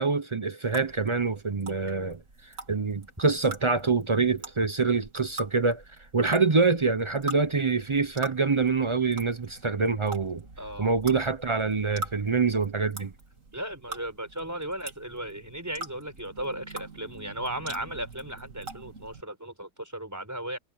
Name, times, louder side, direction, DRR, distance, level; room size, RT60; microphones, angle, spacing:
voice 1, 0.0-2.2 2.7-5.8 6.1-10.4 10.8-13.1, right 4 dB, 40° right, 0.4 m, -25 dB
sound 1, 0.7-19.2, right 2 dB, 60° right, 3.2 m, -44 dB
voice 2, 10.6-10.9 13.5-20.6, right 1 dB, 10° right, 5.1 m, -36 dB
omnidirectional pair, 1.6 m